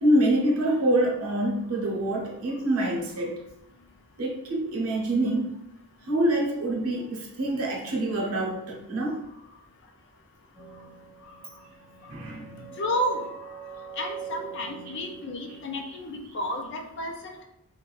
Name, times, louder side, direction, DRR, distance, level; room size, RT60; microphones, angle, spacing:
voice 1, 0.0-3.4 4.2-5.6 6.1-9.2 12.1-12.5 15.9-16.0, right 1 dB, 75° right, -2 dB, 0.7 m, -26 dB
sound 1, 10.5-16.0, right 7 dB, ahead, 0.6 m, -43 dB
voice 2, 12.8-13.3 14.0-17.4, equal, 50° left, 2 dB, 0.4 m, -31 dB
2.4 x 2.1 x 3.2 m, 0.83 s
head